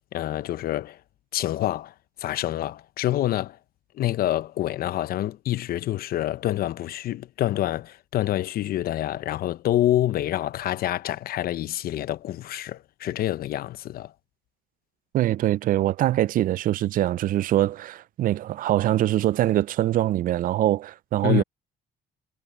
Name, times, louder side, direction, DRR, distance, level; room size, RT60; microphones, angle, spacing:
voice 1, 0.1-1.0 1.3-1.9 2.2-3.6 3.9-14.1 21.2-21.4, left 13 dB, 60° left, 0.8 m, -27 dB
voice 2, 15.1-21.4, right 13 dB, 55° right, 0.5 m, -23 dB
cardioid pair, 110°, 17 cm